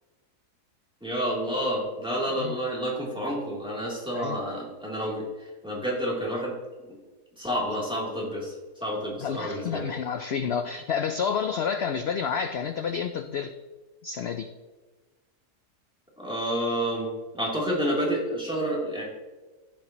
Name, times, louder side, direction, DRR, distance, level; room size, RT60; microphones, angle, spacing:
voice 1, 1.0-6.5 7.4-8.5 8.8-9.8 16.2-17.1 17.3-19.0, equal, 5° right, -5 dB, 3.0 m, -29 dB
voice 2, 9.2-13.5 14.0-14.5, left 6 dB, 80° left, 9 dB, 0.5 m, -29 dB
15.5 x 7.3 x 3.0 m, 1.3 s
omnidirectional pair, 1.7 m